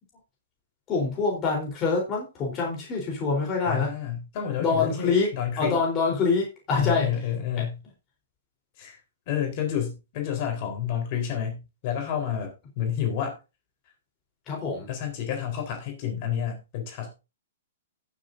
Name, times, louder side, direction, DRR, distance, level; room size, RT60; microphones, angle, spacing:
voice 1, 0.9-3.9 4.6-5.3 5.6-7.1 7.6-7.7 14.5-14.9, left 4 dB, 30° left, -1 dB, 3.9 m, -25 dB
voice 2, 3.7-5.8 6.8-7.8 8.8-9.0 9.3-13.4 14.9-17.2, left 9 dB, 45° left, 3 dB, 4.1 m, -30 dB
18.5 x 7.7 x 2.7 m, 0.28 s
hypercardioid pair, 125°, 0 cm